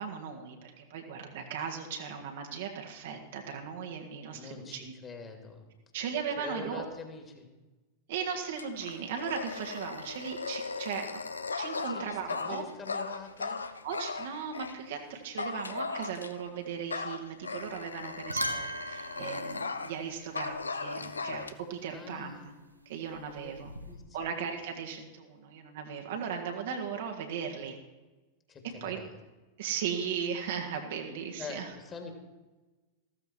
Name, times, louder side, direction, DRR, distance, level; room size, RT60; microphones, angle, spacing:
voice 1, 0.0-4.9 5.9-6.9 8.1-11.2 11.6-12.7 13.8-22.5 22.9-23.7 24.1-27.8 28.8-29.0 29.6-31.7, right 7 dB, 55° right, 3 dB, 1.9 m, -37 dB
voice 2, 4.3-5.6 6.4-7.5 11.9-13.6 21.9-22.5 23.4-23.5 23.9-24.5 28.5-29.1 31.4-32.1, left 4 dB, 25° left, 4 dB, 2.8 m, -44 dB
Dog, 8.6-14.8 15.4-16.5 16.9-20.0 20.3-21.5, left 4 dB, 75° left, 0.7 m, -37 dB
sound 1, 17.5-17.8 18.1-20.7 23.1-24.0, equal, 85° right, 1.0 m, -39 dB
15.0 x 13.5 x 4.5 m, 1.2 s
figure-of-eight pair, 90°, 0 cm